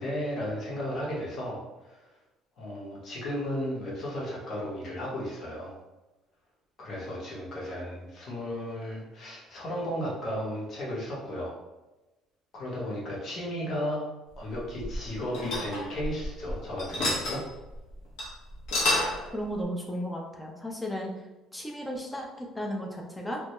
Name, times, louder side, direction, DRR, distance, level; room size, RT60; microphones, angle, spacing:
voice 1, 0.0-1.6 1.8-2.1 2.6-5.7 6.8-11.5 12.5-14.0 14.4-17.4, equal, 45° left, -4 dB, 0.8 m, -34 dB
sound 1, 14.5-16.5 16.8-17.4 17.8-17.9 18.2-18.3 18.5-19.2, left 1 dB, 85° left, 0.7 m, -29 dB
voice 2, 19.3-21.1 21.5-23.4, equal, 10° left, 0 dB, 0.3 m, -34 dB
2.2 x 2.0 x 2.9 m, 1.1 s
cardioid pair, 140°, 0 cm